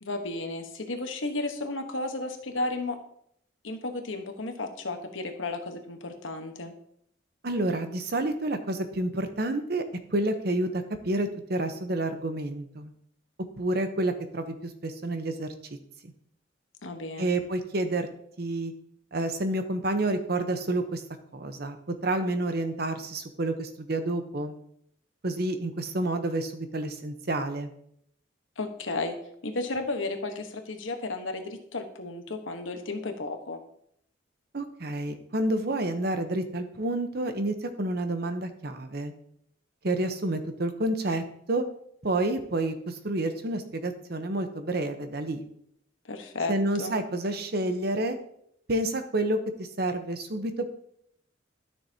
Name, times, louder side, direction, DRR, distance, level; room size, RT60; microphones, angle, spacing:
voice 1, 0.0-3.0 3.6-6.7 16.8-17.4 28.6-29.2 29.4-33.6 46.1-47.0, left 2 dB, 90° left, 5 dB, 1.2 m, -33 dB
voice 2, 7.4-9.8 10.1-12.9 13.6-15.5 17.2-18.1 18.4-18.7 19.1-21.0 21.3-21.8 22.0-24.6 25.2-27.7 34.5-39.1 39.8-41.6 42.0-45.4 46.5-48.2 48.7-50.7, right 1 dB, 55° right, 8 dB, 0.9 m, -29 dB
12.5 x 6.5 x 2.8 m, 0.71 s
head